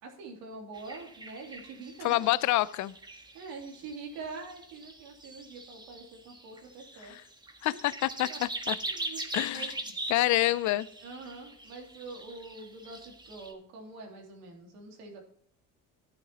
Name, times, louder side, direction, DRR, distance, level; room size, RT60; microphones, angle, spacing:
voice 1, 0.0-2.2 3.3-7.1 7.7-7.9 8.3-8.4 8.8-9.2 9.5-9.7 11.0-13.0 13.3-15.2, right 3 dB, 85° right, 3.0 m, -44 dB
sound 1, 0.7-13.5, right 2 dB, 10° right, 1.4 m, -42 dB
voice 2, 2.0-2.9 7.0-7.2 7.6-8.8 9.3-9.7 10.1-10.9, left 16 dB, 55° left, 0.5 m, -27 dB
12.0 x 9.2 x 2.9 m
supercardioid pair, 95°, 35 cm